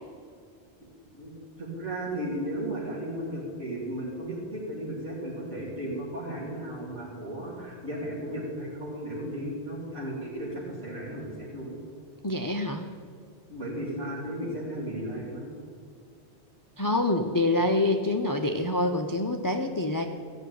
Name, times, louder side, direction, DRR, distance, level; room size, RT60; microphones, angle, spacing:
voice 1, 1.1-11.8 13.5-15.5, right 1 dB, 80° right, -6 dB, 3.6 m, -35 dB
voice 2, 12.2-12.9 16.8-20.1, left 2 dB, 25° left, 5 dB, 0.5 m, -26 dB
15.0 x 6.2 x 9.2 m, 2.1 s
omnidirectional pair, 1.2 m